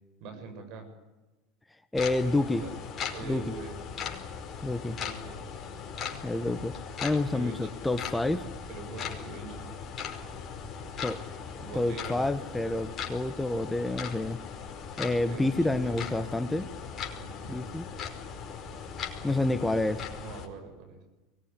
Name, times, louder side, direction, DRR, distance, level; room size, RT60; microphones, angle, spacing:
voice 1, 0.2-0.9 2.5-2.7 3.1-3.8 4.9-5.4 7.3-7.8 8.7-9.7 10.6-10.7 11.6-12.2 15.1-16.2 17.1-17.8 19.2-19.5 20.2-21.0, right 4 dB, 55° right, 5 dB, 7.5 m, -44 dB
sound 1, 1.9-20.5, left 6 dB, 35° left, 5.1 m, -39 dB
voice 2, 1.9-2.6 3.2-3.5 4.6-5.0 6.2-6.7 7.0-8.5 11.0-11.2 11.7-14.4 15.0-16.7 17.5-17.9 19.2-20.0, left 2 dB, 10° left, 11 dB, 1.4 m, -28 dB
23.5 x 19.5 x 10.0 m, 1.1 s
hypercardioid pair, 85°, 0 cm